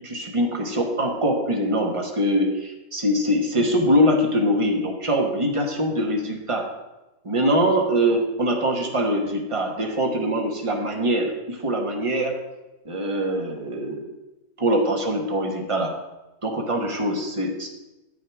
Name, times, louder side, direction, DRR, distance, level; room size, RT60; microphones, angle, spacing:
voice 1, 0.0-6.7 7.2-12.4 12.8-14.1 14.6-15.9 16.4-17.7, equal, 25° right, 1 dB, 1.1 m, -23 dB
8.5 x 6.4 x 4.6 m, 1.0 s
omnidirectional pair, 1.6 m